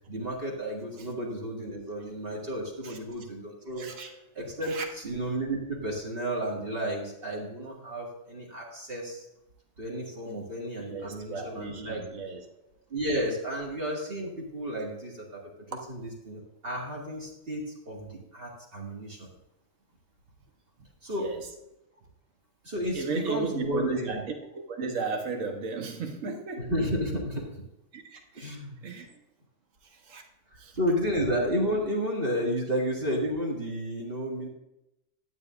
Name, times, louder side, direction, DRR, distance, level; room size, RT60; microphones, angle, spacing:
voice 1, 0.1-4.8 5.0-9.2 9.8-12.0 12.9-15.5 15.9-19.3 21.0-21.3 22.6-24.2 26.6-27.4 28.3-28.8 30.5-34.5, equal, 45° right, -2 dB, 2.2 m, -32 dB
voice 2, 3.8-4.1 4.6-4.8 10.3-10.5 10.9-12.4 21.2-21.5 22.9-24.2 24.5-26.7 27.9-28.5 28.8-29.2 29.8-30.2 30.6-30.8, right 4 dB, 70° right, 3 dB, 1.5 m, -35 dB
12.0 x 9.4 x 2.5 m, 0.90 s
omnidirectional pair, 1.4 m